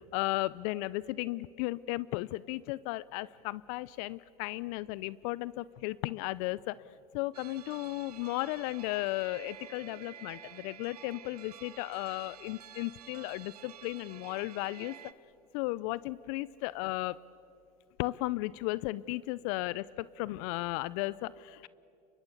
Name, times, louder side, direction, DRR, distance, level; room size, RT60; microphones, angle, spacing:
voice 1, 0.0-6.8 7.1-14.9 15.5-17.2 18.0-21.7, left 19 dB, 65° left, 20 dB, 0.6 m, -35 dB
sound 1, 7.3-15.1, right 10 dB, 90° right, 1.0 m, -51 dB
28.5 x 23.5 x 8.2 m, 2.6 s
hypercardioid pair, 90°, 19 cm